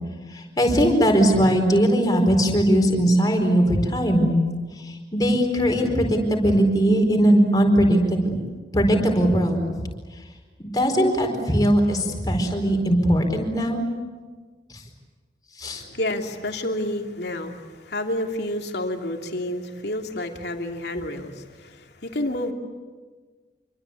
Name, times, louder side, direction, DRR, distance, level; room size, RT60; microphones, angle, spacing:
voice 1, 0.3-4.3 4.8-8.4 8.7-9.9 10.6-13.8 14.7-14.8 15.6-15.8, equal, 20° left, 2 dB, 4.6 m, -20 dB
voice 2, 15.6-22.5, left 1 dB, 75° left, 3 dB, 2.8 m, -29 dB
27.5 x 24.0 x 8.5 m, 1.4 s
head